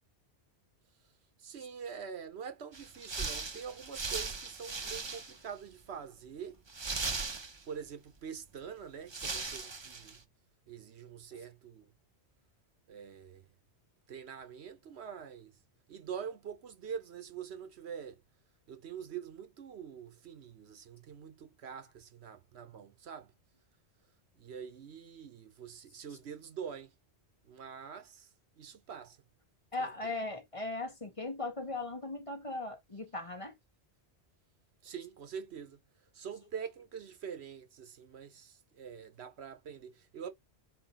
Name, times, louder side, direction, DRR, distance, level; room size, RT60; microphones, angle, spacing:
voice 1, 1.4-6.6 7.6-10.2 10.7-11.9 12.9-13.5 14.1-15.6 15.9-18.2 18.7-23.3 24.4-26.9 27.4-28.3 28.6-29.2 29.8-30.1 34.8-35.8 36.1-40.3, right 7 dB, 70° right, 1.1 m, -45 dB
sound 1, 2.7-5.5 5.8-5.9 6.7-7.9 8.7-8.8 9.1-10.2, right 4 dB, 30° right, 0.7 m, -38 dB
voice 2, 29.7-33.6, left 2 dB, 30° left, 1.0 m, -38 dB
4.4 x 4.1 x 2.9 m
omnidirectional pair, 1.2 m